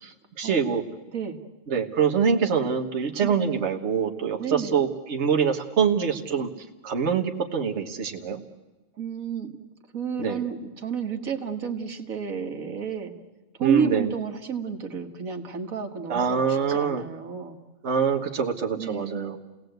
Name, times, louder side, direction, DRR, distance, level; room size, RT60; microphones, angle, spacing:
voice 1, 0.0-0.8 1.7-6.5 6.8-8.4 10.2-10.4 13.6-14.1 16.1-17.0 17.8-19.4, right 6 dB, 55° right, 3 dB, 1.6 m, -25 dB
voice 2, 4.4-4.8 8.9-9.6 9.9-13.1 13.6-17.6 18.8-19.3, right 6 dB, 85° right, 5 dB, 2.1 m, -30 dB
30.0 x 18.0 x 8.0 m, 1.2 s
omnidirectional pair, 1.4 m